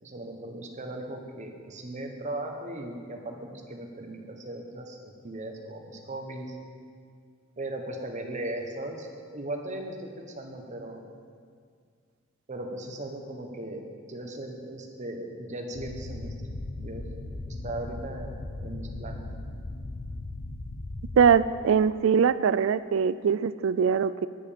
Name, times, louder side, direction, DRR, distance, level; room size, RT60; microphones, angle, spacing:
voice 1, 0.0-5.0 5.2-6.6 7.6-11.0 12.5-13.8 14.1-16.3 16.8-19.2, right 1 dB, 35° right, 3 dB, 1.2 m, -38 dB
sound 1, 15.7-21.3, left 2 dB, 90° left, 0.8 m, -38 dB
voice 2, 21.2-24.3, right 6 dB, 65° right, 15 dB, 0.3 m, -22 dB
11.0 x 9.4 x 5.2 m, 2.1 s
head